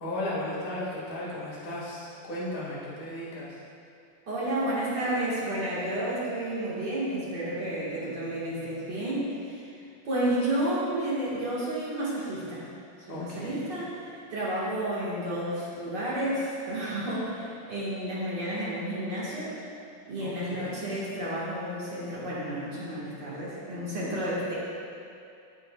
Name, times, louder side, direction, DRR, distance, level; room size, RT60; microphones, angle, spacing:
voice 1, 0.0-3.6 13.1-13.6 20.2-20.8, left 1 dB, 40° left, -7 dB, 0.7 m, -35 dB
voice 2, 4.3-9.7 10.0-12.6 13.1-19.5 20.1-24.6, right 1 dB, 55° right, -8 dB, 1.3 m, -31 dB
13.5 x 5.6 x 2.2 m, 2.5 s
omnidirectional pair, 3.9 m